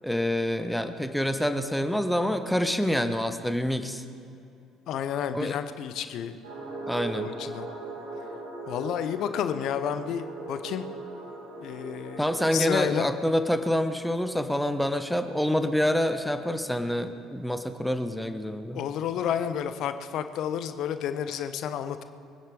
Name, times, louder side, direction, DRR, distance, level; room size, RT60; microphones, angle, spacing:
voice 1, 0.0-4.0 5.3-5.5 6.9-7.3 12.2-18.8, equal, ahead, 8 dB, 0.9 m, -27 dB
voice 2, 4.9-6.4 7.2-7.7 8.7-10.8 11.6-13.1 18.7-22.0, left 9 dB, 50° left, 11 dB, 0.8 m, -31 dB
sound 1, 6.4-12.9, right 3 dB, 70° right, 3.4 m, -39 dB
24.0 x 10.0 x 4.7 m, 2.5 s
figure-of-eight pair, 55°, 0 cm